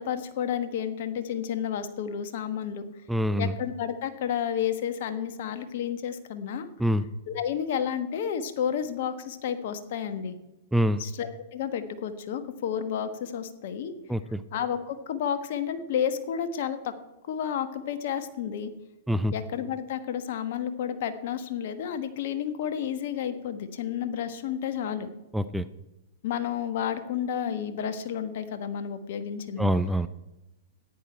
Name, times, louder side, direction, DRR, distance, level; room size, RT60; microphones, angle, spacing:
voice 1, 0.0-2.9 3.4-6.7 7.3-10.4 11.0-13.9 14.5-16.9 17.3-18.7 19.3-25.1 26.2-29.7, left 8 dB, 60° left, 10 dB, 1.3 m, -31 dB
voice 2, 3.1-3.5 6.8-7.0 10.7-11.0 14.1-14.4 19.1-19.3 25.3-25.6 29.6-30.1, equal, 5° right, 12 dB, 0.5 m, -25 dB
13.5 x 10.0 x 4.5 m, 0.96 s
hypercardioid pair, 110°, 0 cm